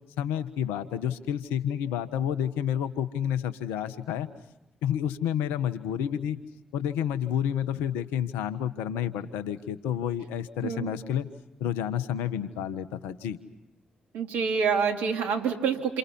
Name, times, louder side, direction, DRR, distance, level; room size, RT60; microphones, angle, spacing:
voice 1, 0.2-4.3 4.8-6.4 6.7-11.3 11.6-13.4, left 9 dB, 85° left, 12 dB, 1.4 m, -30 dB
voice 2, 14.1-16.0, right 6 dB, 80° right, 3 dB, 3.3 m, -27 dB
29.0 x 28.5 x 5.6 m, 0.95 s
hypercardioid pair, 40°, 3 cm